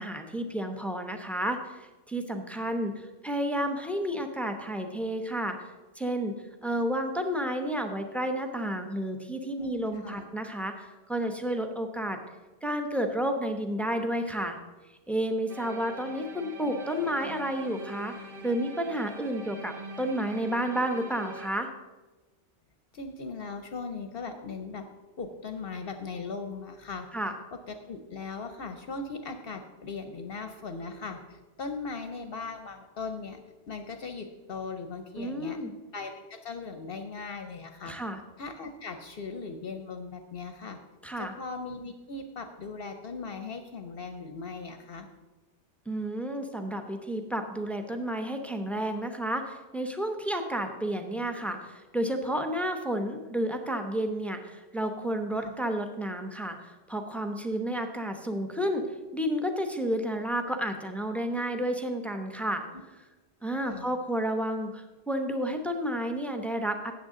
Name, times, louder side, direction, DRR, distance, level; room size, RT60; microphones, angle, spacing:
voice 1, 0.0-5.6 6.0-6.3 6.6-12.2 12.6-14.6 15.1-18.1 18.4-21.7 27.1-27.3 35.2-35.7 37.9-38.2 41.0-41.3 45.9-58.8 59.1-62.6 63.4-66.9, right 1 dB, ahead, 5 dB, 0.7 m, -31 dB
voice 2, 9.5-10.3 16.1-16.2 22.9-24.8 25.2-27.1 27.7-33.4 33.7-35.6 35.9-38.0 38.4-40.8 41.2-45.1 55.4-55.5 62.7-62.8 63.7-63.9, left 4 dB, 60° left, 7 dB, 0.9 m, -39 dB
sound 1, 15.5-21.5, right 3 dB, 50° right, 1.2 m, -43 dB
13.0 x 8.6 x 3.8 m, 1.2 s
omnidirectional pair, 1.2 m